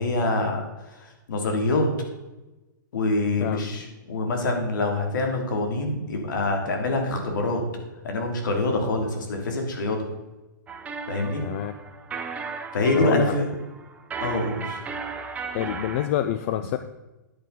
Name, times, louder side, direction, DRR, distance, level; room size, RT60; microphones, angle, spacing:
voice 1, 0.0-1.9 2.9-10.1 11.1-11.4 12.7-13.5 14.2-14.9, left 2 dB, 70° left, 3 dB, 2.9 m, -25 dB
sound 1, 10.7-16.1, right 5 dB, 10° right, 0.9 m, -35 dB
voice 2, 11.4-11.7 12.9-13.3 15.5-16.8, left 12 dB, 40° left, 10 dB, 0.5 m, -27 dB
10.5 x 8.8 x 4.0 m, 1.1 s
hypercardioid pair, 140°, 11 cm